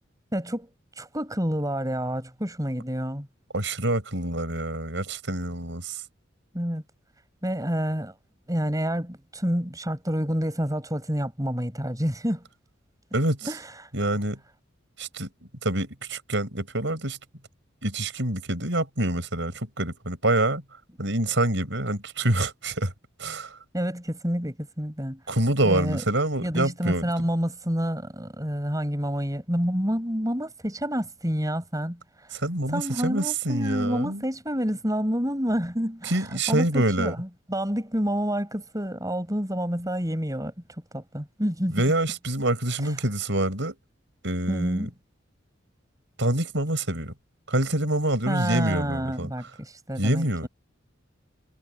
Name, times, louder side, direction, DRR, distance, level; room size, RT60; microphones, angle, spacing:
voice 1, 0.3-0.7 1.0-3.3 6.5-6.8 7.4-8.1 8.5-12.4 13.4-13.9 23.7-25.2 25.6-26.0 26.4-32.4 32.7-40.5 40.9-41.8 42.8-42.9 44.5-44.9 48.3-50.5, equal, 20° right, 6.6 m, -28 dB
voice 2, 3.5-6.0 13.1-13.5 13.9-14.4 15.0-15.3 15.6-17.2 17.8-20.6 21.0-22.9 23.2-23.5 25.3-27.0 32.3-34.2 36.1-37.1 41.7-43.8 44.2-44.9 46.2-47.1 47.5-49.3 50.0-50.5, right 1 dB, 65° right, 6.9 m, -26 dB
head